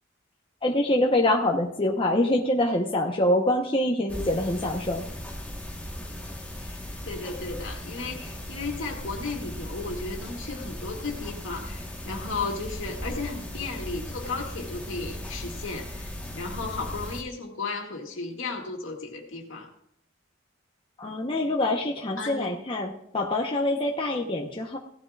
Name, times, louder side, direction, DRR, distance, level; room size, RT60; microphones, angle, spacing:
voice 1, 0.6-5.0 21.0-24.8, left 1 dB, 25° left, 0 dB, 1.0 m, -25 dB
sound 1, 4.1-17.2, left 1 dB, 5° left, 1.3 m, -37 dB
voice 2, 6.6-19.7 22.2-22.6, left 3 dB, 70° left, 1 dB, 2.2 m, -35 dB
17.0 x 11.5 x 2.4 m, 0.71 s
head